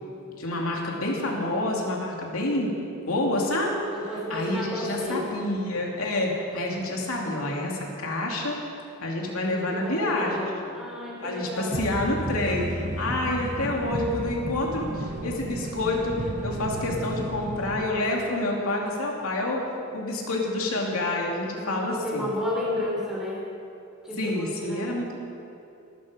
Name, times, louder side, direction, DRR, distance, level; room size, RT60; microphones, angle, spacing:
voice 1, 0.4-2.7 3.1-3.8 4.3-8.6 9.0-10.4 11.2-19.7 19.9-22.3 24.2-25.1, left 1 dB, 85° left, -1 dB, 2.8 m, -28 dB
voice 2, 3.9-5.2 9.7-11.8 21.5-23.4 24.0-24.8, left 1 dB, 5° right, -5 dB, 4.1 m, -32 dB
sound 1, 11.7-17.8, right 1 dB, 35° right, 0.8 m, -33 dB
18.0 x 13.0 x 5.2 m, 2.7 s
head